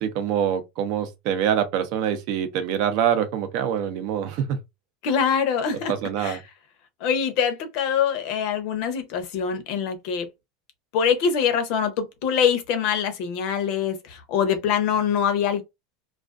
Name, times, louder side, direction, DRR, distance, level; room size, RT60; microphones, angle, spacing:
voice 1, 0.0-4.6 5.9-6.4, right 9 dB, 55° right, 0.6 m, -25 dB
voice 2, 5.0-5.9 6.2-6.4 7.0-10.3 10.9-15.6, left 7 dB, 55° left, 0.6 m, -24 dB
2.3 x 2.3 x 2.4 m
supercardioid pair, 150°, 0 cm